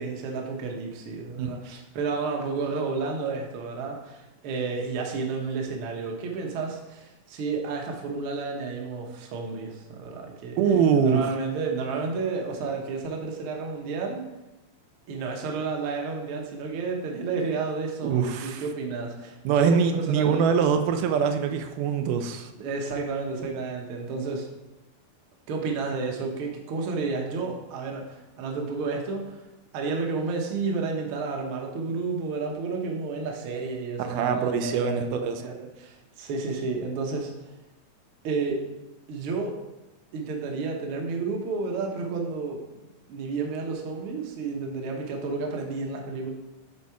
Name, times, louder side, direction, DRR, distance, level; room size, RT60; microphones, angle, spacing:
voice 1, 0.0-10.6 11.0-14.2 15.1-20.6 22.6-24.5 25.5-29.4 29.7-37.5 38.2-38.6 39.1-39.6 40.1-46.3, right 4 dB, 60° right, 1 dB, 1.4 m, -31 dB
voice 2, 10.6-11.3 18.0-18.6 19.5-22.5 34.0-35.5, right 6 dB, 90° right, 7 dB, 2.2 m, -24 dB
8.4 x 4.2 x 4.7 m, 1.0 s
omnidirectional pair, 3.6 m